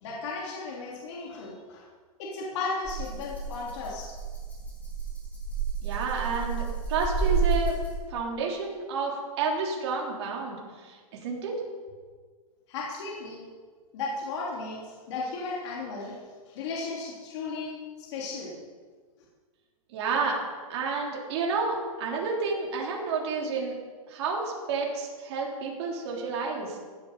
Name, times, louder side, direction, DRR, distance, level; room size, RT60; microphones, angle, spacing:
voice 1, 0.0-1.8 2.2-4.1 12.7-13.4 13.9-14.8 15.1-16.2 16.5-18.5, left 3 dB, 50° left, -4 dB, 3.2 m, -35 dB
Rattle (instrument), 2.8-8.2, right 5 dB, 10° left, 3.1 m, -30 dB
voice 2, 5.8-6.6 6.9-7.8 8.1-10.6 10.8-11.6 19.9-20.4 20.7-23.7 24.1-26.9, right 4 dB, 45° right, -2 dB, 3.4 m, -30 dB
15.0 x 8.2 x 6.8 m, 1.5 s
hypercardioid pair, 150°, 19 cm